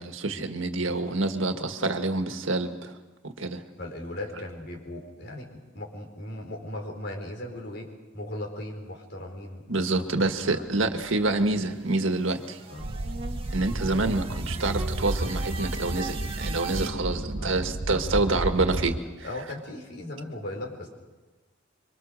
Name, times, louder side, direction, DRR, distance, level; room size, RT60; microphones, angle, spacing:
voice 1, 0.0-2.9 3.2-3.6 9.7-12.6 13.5-19.0, right 2 dB, 85° right, 6 dB, 1.8 m, -27 dB
voice 2, 0.8-1.2 3.8-9.9 10.3-11.0 12.7-12.9 16.7-16.8 17.4-17.6 17.9-18.0 18.8-19.0 19.2-20.9, left 1 dB, 55° left, 1 dB, 4.6 m, -38 dB
sound 1, 10.5-16.9, right 4 dB, 30° right, 1.7 m, -41 dB
sound 2, 12.8-19.0, right 1 dB, 50° right, 0.9 m, -32 dB
26.0 x 24.5 x 6.5 m, 1.2 s
head